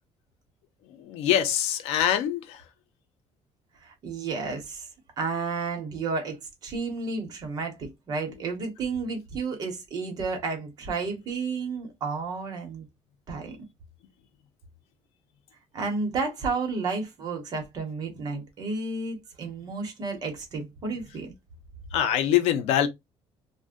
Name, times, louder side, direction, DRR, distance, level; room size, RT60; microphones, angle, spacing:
voice 1, 0.9-2.6 21.9-22.9, left 10 dB, 85° left, 0.6 m, -24 dB
voice 2, 3.8-4.9 5.2-12.9 13.3-13.6 15.7-21.3, right 4 dB, 40° right, 0.9 m, -32 dB
2.5 x 2.1 x 3.6 m
cardioid pair, 175°, 10 cm